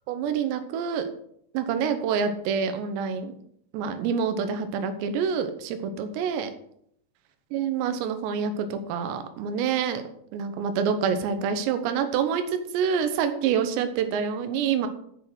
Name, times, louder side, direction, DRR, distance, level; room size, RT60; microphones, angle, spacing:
voice 1, 0.1-1.1 1.5-3.3 3.7-6.5 7.5-10.0 10.3-14.9, right 7 dB, 75° right, 8 dB, 2.9 m, -27 dB
8.1 x 7.4 x 6.2 m, 0.69 s
omnidirectional pair, 5.8 m